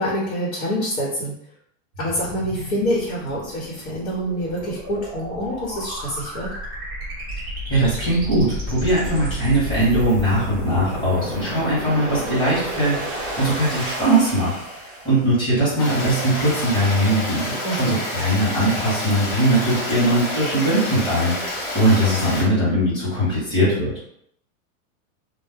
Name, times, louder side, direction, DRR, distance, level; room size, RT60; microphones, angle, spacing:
voice 1, 0.0-1.3 2.0-6.5 17.6-18.0, equal, 80° left, -5 dB, 1.2 m, -26 dB
sound 1, 1.9-15.3, equal, 20° right, 0.3 m, -31 dB
voice 2, 7.7-24.0, right 1 dB, 10° left, -10 dB, 1.1 m, -20 dB
Stream, 15.8-22.4, left 1 dB, 35° left, 0.7 m, -28 dB
2.4 x 2.1 x 3.5 m, 0.70 s
supercardioid pair, 170°, 41 cm